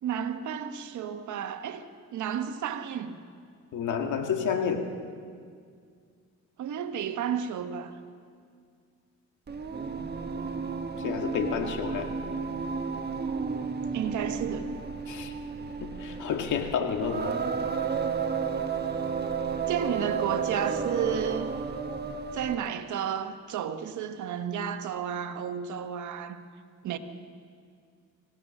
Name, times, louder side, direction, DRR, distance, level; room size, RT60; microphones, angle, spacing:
voice 1, 0.0-1.8 2.1-3.2 6.6-7.9 13.9-14.7 19.7-21.5 22.3-26.4 26.8-27.0, right 8 dB, 75° right, 1.3 m, -32 dB
voice 2, 3.7-4.9 11.0-12.1 15.1-15.3 15.8-17.3, left 7 dB, 80° left, 2.1 m, -30 dB
Singing, 9.5-22.7, right 5 dB, 35° right, 1.3 m, -32 dB
26.0 x 16.0 x 6.6 m
cardioid pair, 90°, 30 cm